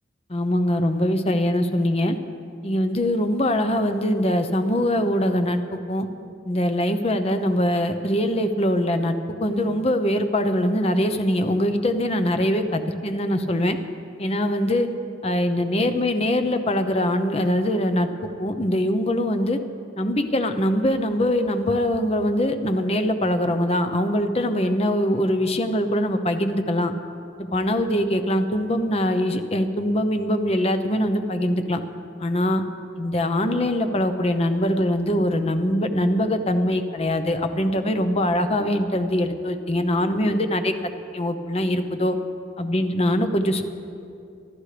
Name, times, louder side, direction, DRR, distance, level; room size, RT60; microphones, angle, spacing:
voice 1, 0.3-2.2 2.6-5.6 5.9-6.1 6.5-13.8 14.2-14.9 15.2-18.1 18.4-19.6 20.0-26.9 27.5-31.8 32.2-32.6 33.0-42.2 42.6-43.6, left 1 dB, 30° left, 7 dB, 0.8 m, -22 dB
26.5 x 11.5 x 3.4 m, 2.5 s
head